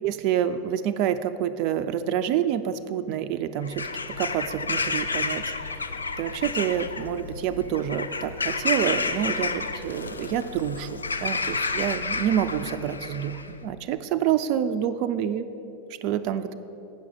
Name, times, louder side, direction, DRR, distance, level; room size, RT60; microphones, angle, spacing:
voice 1, 0.0-5.8 6.2-15.5 16.0-16.6, right 10 dB, 50° right, 9 dB, 0.4 m, -27 dB
Bird vocalization bird call bird song / Crow, 3.6-13.5, left 4 dB, 90° left, 0.4 m, -30 dB
8.9 x 6.2 x 7.3 m, 3.0 s
hypercardioid pair, 90°, 0 cm